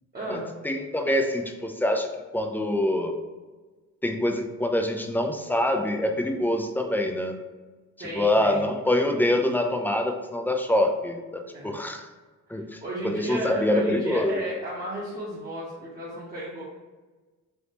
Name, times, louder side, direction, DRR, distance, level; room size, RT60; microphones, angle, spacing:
voice 1, 0.1-0.5 8.0-8.7 11.5-11.8 12.5-16.6, right 1 dB, 30° right, -8 dB, 0.9 m, -34 dB
voice 2, 0.6-3.1 4.0-7.4 8.1-12.1 12.5-14.4, left 1 dB, 5° left, 4 dB, 0.3 m, -25 dB
3.4 x 2.7 x 2.9 m, 1.3 s
cardioid pair, 90°, 30 cm